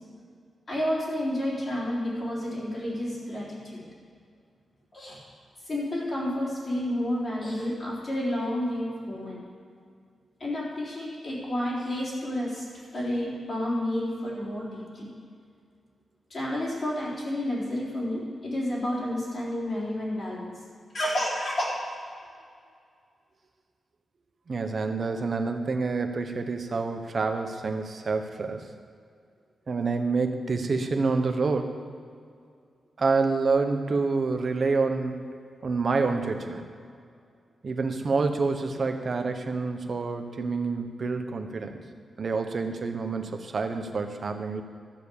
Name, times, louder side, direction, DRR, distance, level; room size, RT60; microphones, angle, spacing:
voice 1, 0.7-3.8 4.9-5.2 5.7-9.4 10.4-12.7 12.9-15.1 16.3-20.5 20.9-21.7, left 1 dB, 40° left, -7 dB, 3.8 m, -30 dB
voice 2, 24.5-28.7 29.7-31.8 33.0-35.2 35.6-36.7 37.6-41.8 42.2-44.6, right 4 dB, 40° right, 6 dB, 1.0 m, -27 dB
13.0 x 7.4 x 7.0 m, 2.2 s
wide cardioid pair, 160°, 0 cm